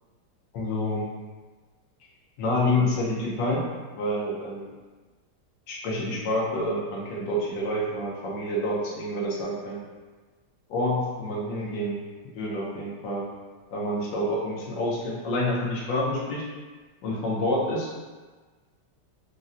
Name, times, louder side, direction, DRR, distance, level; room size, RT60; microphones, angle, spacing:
voice 1, 0.5-1.1 2.4-3.6 4.0-4.7 5.7-9.8 10.7-12.0 12.3-13.3 13.7-16.5 17.0-18.0, left 1 dB, 85° left, -4 dB, 1.3 m, -28 dB
3.8 x 2.1 x 2.5 m, 1.3 s
omnidirectional pair, 1.9 m